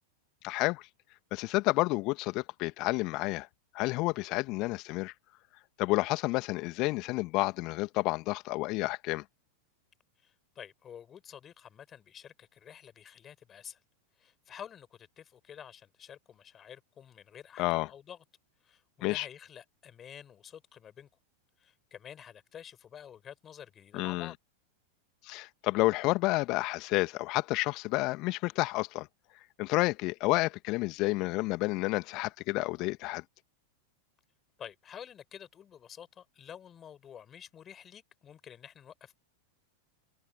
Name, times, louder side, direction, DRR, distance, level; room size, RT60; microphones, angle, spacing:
voice 1, 0.4-0.9 1.3-3.5 3.7-5.1 5.8-9.2 17.6-17.9 19.0-19.3 23.9-24.3 25.2-29.1 29.6-33.2, left 22 dB, 40° left, 1.9 m, -30 dB
voice 2, 10.2-13.8 14.2-18.2 18.6-21.1 21.6-24.3 34.6-39.2, left 9 dB, 25° left, 5.3 m, -49 dB
figure-of-eight pair, 90°, 0 cm